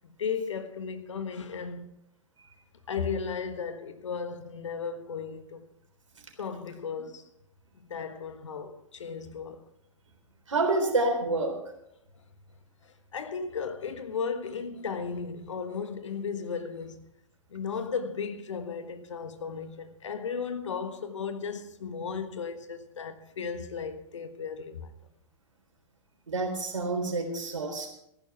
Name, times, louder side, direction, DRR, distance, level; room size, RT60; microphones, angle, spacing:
voice 1, 0.0-1.9 2.9-5.7 6.4-7.2 7.8-9.7 12.8-17.0 17.5-24.9, left 6 dB, 70° left, 1.4 m, -35 dB
voice 2, 10.5-11.5 26.3-27.9, right 2 dB, 75° right, 3.7 m, -28 dB
14.5 x 11.5 x 5.8 m
figure-of-eight pair, 100°, 16 cm